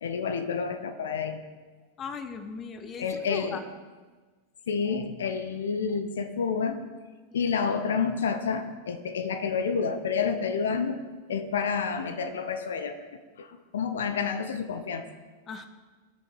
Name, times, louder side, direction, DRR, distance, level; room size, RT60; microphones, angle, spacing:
voice 1, 0.0-1.4 3.0-3.6 4.7-6.8 7.3-11.0 11.3-13.1 13.4-15.1, left 6 dB, 65° left, 10 dB, 0.8 m, -29 dB
voice 2, 2.0-3.6 15.5-15.7, left 5 dB, 25° left, 11 dB, 0.8 m, -38 dB
18.5 x 6.4 x 4.7 m, 1.4 s
figure-of-eight pair, 90°, 0 cm